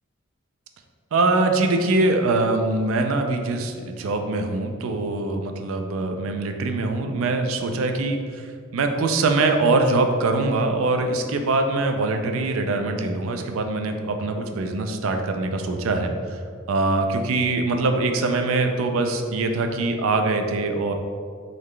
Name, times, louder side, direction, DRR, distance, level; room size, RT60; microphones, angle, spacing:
voice 1, 1.1-8.5 8.7-16.4 16.7-20.9, right 3 dB, 70° right, 5 dB, 0.4 m, -23 dB
3.9 x 3.2 x 3.2 m, 2.1 s
head